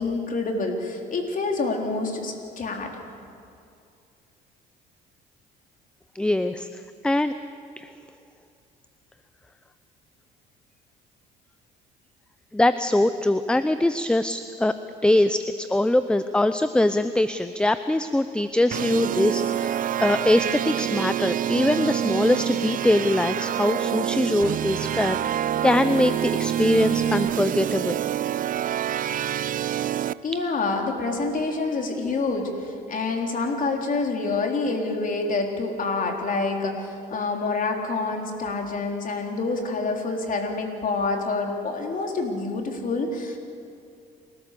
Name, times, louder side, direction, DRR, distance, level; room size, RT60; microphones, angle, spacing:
voice 1, 0.0-2.9 30.2-43.4, left 3 dB, 45° left, 2 dB, 3.8 m, -27 dB
voice 2, 6.1-7.3 7.8-7.9 12.5-14.7 15.0-28.0, left 1 dB, 5° left, 12 dB, 0.6 m, -23 dB
sound 1, 18.7-30.1, right 10 dB, 45° right, 0.5 m, -26 dB
29.0 x 13.5 x 6.9 m, 2.5 s
supercardioid pair, 80°, 20 cm